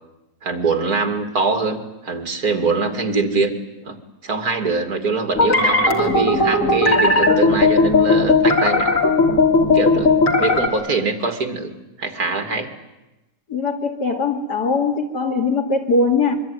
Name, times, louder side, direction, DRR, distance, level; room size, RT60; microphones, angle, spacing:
voice 1, 0.4-3.5 3.8-4.0 4.2-8.9 9.7-10.1 10.4-11.7 12.0-12.7, right 4 dB, 65° right, 7 dB, 3.0 m, -23 dB
sound 1, 5.3-10.7, left 3 dB, 50° left, 3.4 m, -16 dB
voice 2, 13.5-16.4, left 3 dB, 85° left, 3 dB, 3.1 m, -20 dB
25.0 x 23.5 x 9.8 m, 1.0 s
omnidirectional pair, 1.7 m